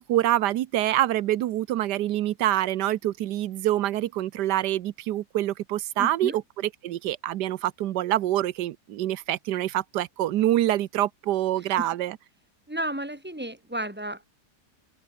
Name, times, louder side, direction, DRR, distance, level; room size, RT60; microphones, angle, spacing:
voice 1, 0.0-6.4 6.8-12.2, right 13 dB, 85° right, 1.3 m, -26 dB
voice 2, 6.0-6.4 11.8-11.9 12.7-14.2, right 1 dB, 5° right, 3.8 m, -32 dB
omnidirectional pair, 1.8 m